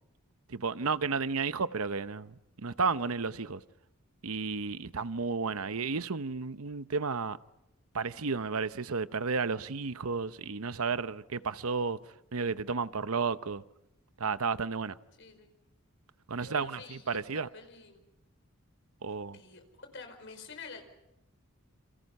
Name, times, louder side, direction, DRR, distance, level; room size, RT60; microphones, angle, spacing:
voice 1, 0.5-3.6 4.2-7.4 7.9-12.0 12.3-13.6 14.2-15.0 16.3-17.5 19.0-19.4, right 4 dB, 75° right, 0.9 m, -32 dB
voice 2, 15.2-15.5 16.4-18.0 19.3-20.8, left 4 dB, 55° left, 5.1 m, -48 dB
29.0 x 28.5 x 5.5 m
head